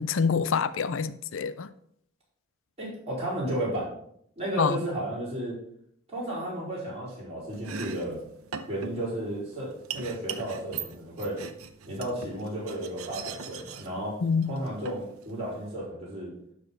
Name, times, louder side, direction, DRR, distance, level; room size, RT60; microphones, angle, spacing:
voice 1, 0.0-1.7 4.6-4.8 14.2-14.5, left 5 dB, 65° left, 15 dB, 0.4 m, -26 dB
voice 2, 2.8-3.9 4.4-5.6 6.1-8.2 8.7-11.4 11.9-14.2 14.4-16.3, right 1 dB, 30° right, -6 dB, 4.6 m, -33 dB
Domestic sounds home sounds, 7.5-15.7, right 6 dB, 80° right, 0.7 m, -41 dB
12.0 x 4.2 x 5.9 m, 0.70 s
head